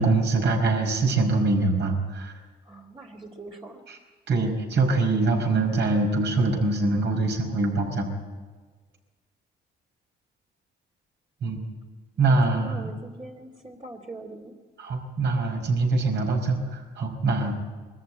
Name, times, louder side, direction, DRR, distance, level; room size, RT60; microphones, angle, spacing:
voice 1, 0.0-2.3 3.9-4.0 4.3-8.1 11.4-11.6 12.2-12.9 14.8-17.6, right 3 dB, 60° right, 2 dB, 5.0 m, -24 dB
voice 2, 2.7-3.8 12.3-14.5, right 2 dB, 25° right, -1 dB, 2.4 m, -42 dB
22.5 x 14.0 x 8.7 m, 1.4 s
cardioid pair, 90°, 20 cm